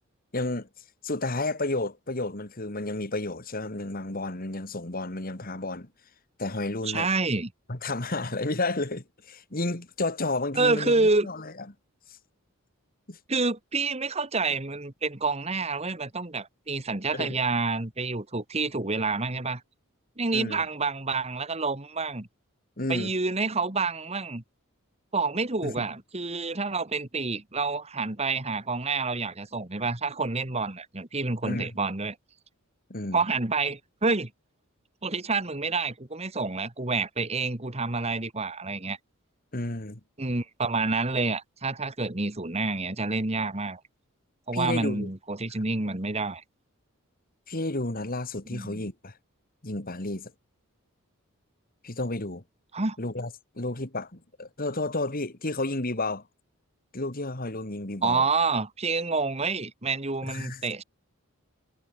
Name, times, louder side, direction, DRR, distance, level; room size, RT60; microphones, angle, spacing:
voice 1, 0.3-0.7 1.0-5.9 6.4-7.1 7.7-11.5 13.1-13.2 17.1-17.3 20.3-20.6 22.8-23.1 25.6-25.8 31.4-31.7 32.9-33.2 39.5-40.0 44.5-45.1 47.5-49.1 49.6-50.3 51.8-52.4 53.0-53.3 53.6-56.2 56.9-58.3 60.3-60.6, left 2 dB, 40° left, 2.2 m, -31 dB
voice 2, 6.9-7.5 10.6-11.3 13.3-19.6 20.2-22.3 22.9-24.4 25.1-32.2 33.1-34.3 35.0-39.0 40.2-43.8 44.5-46.4 48.5-48.8 52.7-53.0 58.0-60.8, right 3 dB, 30° right, 1.8 m, -28 dB
head